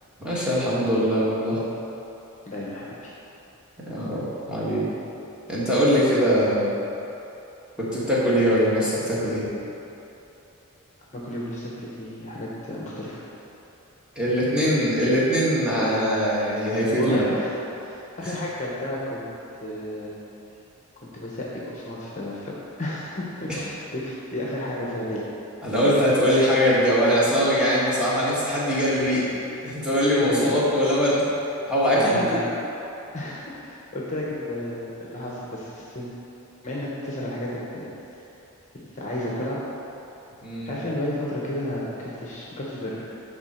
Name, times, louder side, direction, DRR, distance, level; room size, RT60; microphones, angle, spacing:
voice 1, 0.2-1.6 3.8-4.9 5.5-6.7 7.8-9.4 14.1-17.3 23.5-23.6 25.6-29.3 29.6-31.2 31.7-32.4 40.4-40.7, equal, 5° right, -9 dB, 1.7 m, -22 dB
voice 2, 2.5-3.1 11.1-13.2 16.9-17.5 17.8-19.3 19.6-20.1 21.0-22.5 22.8-25.2 30.2-30.6 31.9-32.5 33.1-36.1 36.6-37.9 38.7-39.6 40.7-43.0, left 1 dB, 35° left, -5 dB, 0.9 m, -32 dB
11.5 x 3.8 x 4.4 m, 3.0 s
head